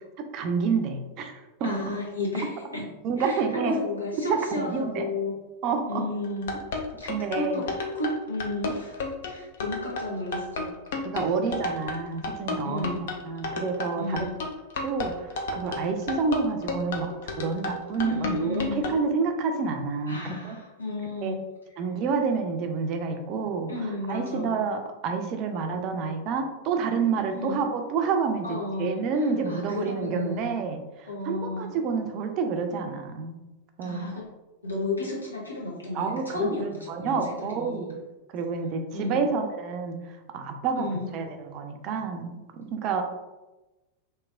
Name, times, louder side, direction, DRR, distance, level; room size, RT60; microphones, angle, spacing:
voice 1, 0.2-1.3 1.6-1.7 3.0-3.8 4.3-5.0 5.6-6.1 7.1-7.6 11.0-14.3 14.8-20.6 21.2-21.3 21.8-33.4 33.8-34.2 35.9-38.0 38.3-43.0, right 5 dB, 40° right, 5 dB, 0.4 m, -29 dB
voice 2, 1.6-2.9 3.2-5.3 5.9-6.6 7.0-10.7 12.6-13.1 14.0-14.3 18.0-18.8 20.1-21.4 23.7-24.5 27.3-27.6 28.4-30.5 31.1-31.7 33.8-34.2 34.6-37.9 38.9-39.2 40.8-41.1, left 2 dB, 80° left, -4 dB, 0.9 m, -33 dB
sound 1, 6.2-19.0, left 3 dB, 55° left, 0.5 m, -32 dB
3.2 x 2.9 x 2.4 m, 1.1 s
figure-of-eight pair, 90°, 0 cm